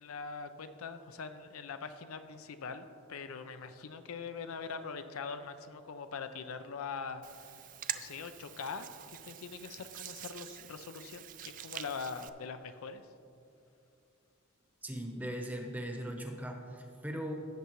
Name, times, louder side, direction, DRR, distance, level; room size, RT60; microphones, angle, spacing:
voice 1, 0.0-7.6 7.9-13.1, left 5 dB, 90° left, 9 dB, 0.5 m, -43 dB
Hands, 7.2-12.3, right 11 dB, 40° right, 0.3 m, -45 dB
voice 2, 14.8-17.3, equal, 10° right, 2 dB, 0.8 m, -39 dB
16.0 x 6.9 x 3.1 m, 2.6 s
head